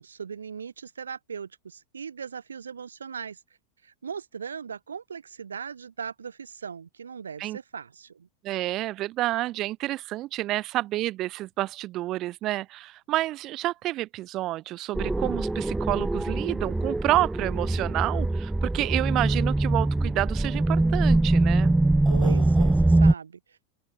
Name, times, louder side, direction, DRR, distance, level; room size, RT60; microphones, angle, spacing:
voice 1, 0.0-3.4 3.8-8.3 22.1-23.6, right 6 dB, 70° right, 2.6 m, -38 dB
voice 2, 8.4-21.7, right 16 dB, 35° right, 1.9 m, -29 dB
sound 1, 15.0-23.1, right 2 dB, 5° right, 0.5 m, -23 dB
open air
figure-of-eight pair, 90°, 0 cm